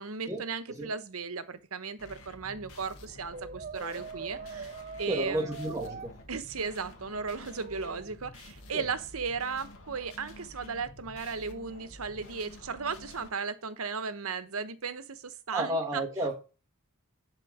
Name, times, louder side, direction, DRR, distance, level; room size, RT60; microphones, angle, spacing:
voice 1, 0.0-5.5 6.3-16.0, right 5 dB, 70° right, 1.0 m, -36 dB
sound 1, 2.0-13.3, left 1 dB, 70° left, 1.8 m, -50 dB
Brass instrument, 3.3-6.1 7.6-8.2, right 5 dB, 40° right, 0.5 m, -42 dB
voice 2, 5.1-6.1 8.7-8.8 15.5-16.3, right 1 dB, 15° right, 1.4 m, -31 dB
10.5 x 3.8 x 4.8 m
head